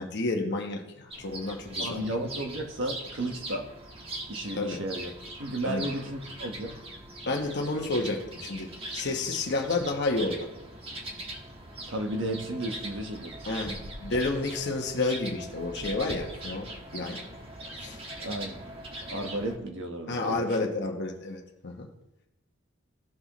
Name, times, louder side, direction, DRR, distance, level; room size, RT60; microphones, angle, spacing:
voice 1, 0.0-2.0 4.5-4.8 5.6-5.9 7.2-10.5 13.4-17.2 17.8-18.0 20.1-21.9, left 2 dB, 55° left, 2 dB, 1.1 m, -30 dB
sound 1, 1.1-19.6, right 1 dB, 30° right, 1.4 m, -41 dB
voice 2, 1.8-3.7 4.3-5.1 5.4-6.7 11.9-13.4 18.2-18.6 19.1-20.7, right 1 dB, 65° right, 4 dB, 1.3 m, -33 dB
15.5 x 6.2 x 3.0 m, 0.90 s
head